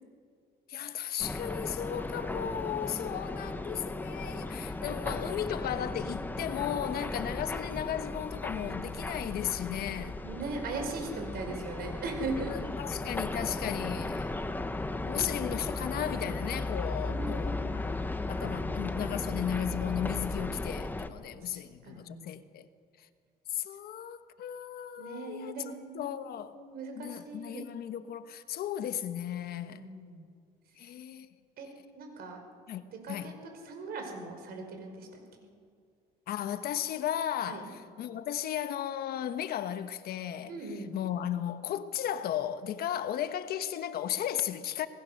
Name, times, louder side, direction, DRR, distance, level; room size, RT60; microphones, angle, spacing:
voice 1, 0.7-10.2 11.5-11.6 12.5-14.3 15.0-17.9 18.3-22.7 23.5-26.6 26.9-29.9 30.8-31.3 32.7-33.3 36.3-44.9, left 10 dB, 65° left, 1.2 m, -35 dB
sound 1, 1.2-21.1, left 2 dB, 10° left, 1.3 m, -36 dB
voice 2, 10.2-12.7 17.1-17.5 21.3-22.3 25.0-27.7 29.7-30.3 31.6-31.7 31.9-32.4 32.9-33.3 33.6-35.2 37.5-37.6 40.5-40.9, right 3 dB, 65° right, 4.9 m, -39 dB
26.5 x 20.0 x 6.6 m
cardioid pair, 110°, 17 cm